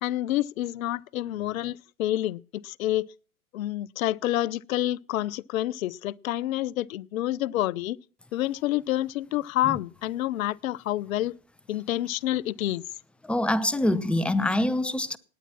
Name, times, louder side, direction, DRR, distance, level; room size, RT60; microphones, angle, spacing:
voice 1, 0.0-3.1 3.5-8.0 8.3-11.3 11.7-12.8, left 14 dB, 70° left, 0.6 m, -28 dB
voice 2, 13.2-15.2, left 1 dB, 5° left, 0.6 m, -25 dB
18.0 x 9.4 x 6.0 m
hypercardioid pair, 95°, 42 cm